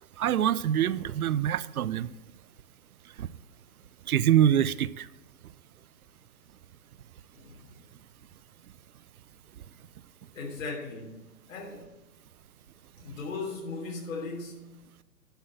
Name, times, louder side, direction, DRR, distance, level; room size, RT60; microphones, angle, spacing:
voice 1, 0.2-2.1 3.2-3.3 4.1-5.0, right 10 dB, 65° right, 0.5 m, -25 dB
voice 2, 7.3-7.7 10.3-11.2 11.5-11.9 13.0-14.8, left 3 dB, 55° left, 3.2 m, -38 dB
11.5 x 4.3 x 7.6 m
hypercardioid pair, 175°, 48 cm